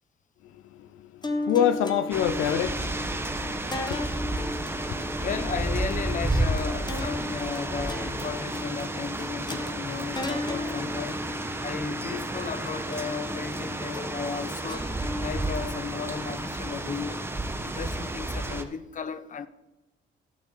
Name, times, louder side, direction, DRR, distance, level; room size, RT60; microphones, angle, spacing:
voice 1, 0.5-5.1, left 9 dB, 90° left, 0.5 m, -29 dB
sound 1, 1.2-17.7, left 2 dB, 20° left, 1.5 m, -36 dB
sound 2, 2.1-18.6, right 2 dB, 10° right, 1.1 m, -32 dB
voice 2, 5.2-11.3 11.6-14.9 15.2-17.3 17.6-19.5, left 6 dB, 40° left, 0.8 m, -35 dB
15.5 x 6.1 x 4.1 m
cardioid pair, 90°, 20 cm